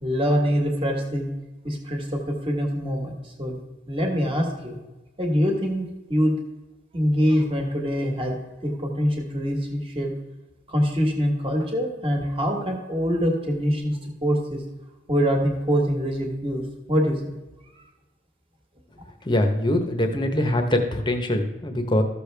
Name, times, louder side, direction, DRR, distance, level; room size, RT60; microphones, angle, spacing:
voice 1, 0.0-1.3 1.6-3.6 3.9-4.8 5.2-6.3 6.9-8.4 8.6-10.1 10.7-14.6 15.1-17.4, equal, 25° right, 1 dB, 1.5 m, -24 dB
voice 2, 19.2-22.0, left 1 dB, 25° left, 6 dB, 0.9 m, -23 dB
14.0 x 6.7 x 3.4 m, 1.1 s
head